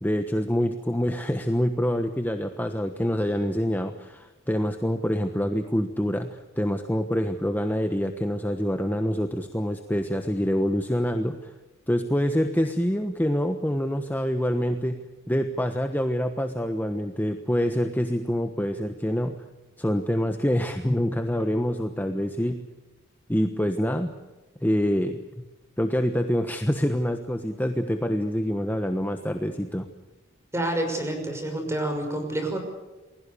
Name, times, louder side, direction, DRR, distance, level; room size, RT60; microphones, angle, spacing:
voice 1, 0.0-11.5 11.9-19.4 19.8-22.6 23.3-24.1 24.6-25.4 25.8-29.9, equal, 10° left, 6 dB, 1.2 m, -26 dB
voice 2, 30.5-32.6, right 1 dB, 15° right, 4 dB, 6.0 m, -28 dB
29.0 x 21.0 x 6.9 m, 1.1 s
head